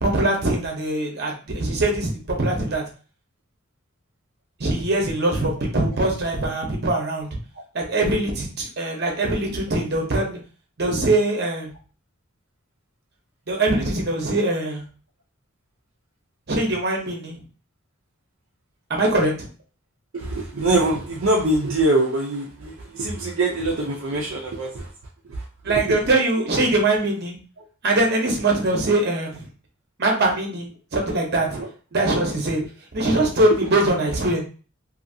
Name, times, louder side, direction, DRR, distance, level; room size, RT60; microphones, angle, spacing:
voice 1, 0.0-2.8 4.6-7.3 7.7-10.4 10.8-11.7 13.5-14.8 16.5-17.4 18.9-19.5 25.6-27.4 27.8-29.4 30.0-31.6 31.9-32.6 32.9-34.4, right 2 dB, 50° right, 0.9 m, -22 dB
voice 2, 20.1-24.9 25.3-26.0 31.6-31.7, right 2 dB, 70° right, 0.5 m, -24 dB
2.7 x 2.6 x 2.6 m
head